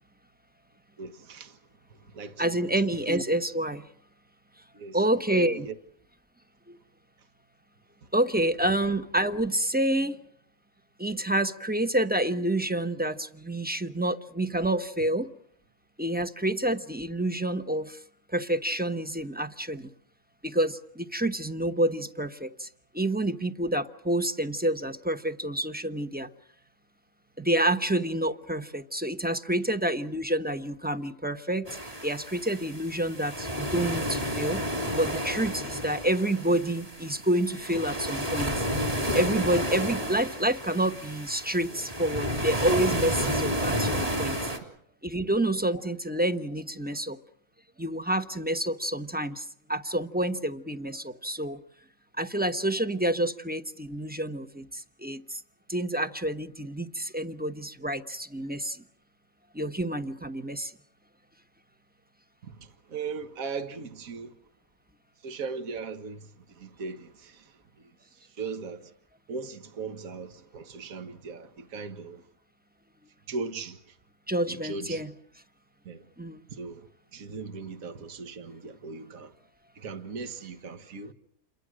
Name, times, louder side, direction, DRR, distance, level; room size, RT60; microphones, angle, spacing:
voice 1, 1.0-1.6 2.0-2.6 3.1-3.2 4.7-5.0 5.3-5.7 62.4-64.3 65.2-68.9 69.3-72.3 73.3-74.0 74.5-75.0 75.9-76.0 76.5-79.3 79.8-81.1, right 4 dB, 65° right, 1.9 m, -38 dB
voice 2, 2.4-3.9 4.9-5.7 6.7-6.8 8.1-10.2 11.0-15.3 16.0-18.0 18.3-19.9 20.4-22.7 22.9-26.3 27.4-38.7 39.1-44.4 45.0-47.2 47.8-51.6 52.2-55.4 55.7-58.8 59.5-60.7 74.3-75.1 76.2-76.4, right 1 dB, 10° right, 0.8 m, -28 dB
sound 1, 31.7-44.6, equal, 25° right, 3.5 m, -31 dB
29.0 x 23.0 x 6.3 m
omnidirectional pair, 1.6 m